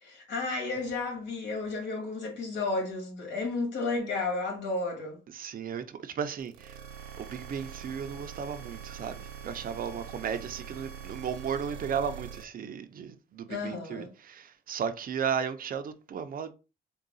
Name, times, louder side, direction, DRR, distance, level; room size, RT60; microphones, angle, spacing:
voice 1, 0.0-5.2 13.5-14.1, left 3 dB, 60° left, 2.2 m, -32 dB
voice 2, 5.3-16.5, right 7 dB, 45° right, 0.6 m, -35 dB
sound 1, 6.4-12.4, right 8 dB, 90° right, 0.7 m, -43 dB
3.7 x 2.3 x 3.9 m
cardioid pair, 90°, 20 cm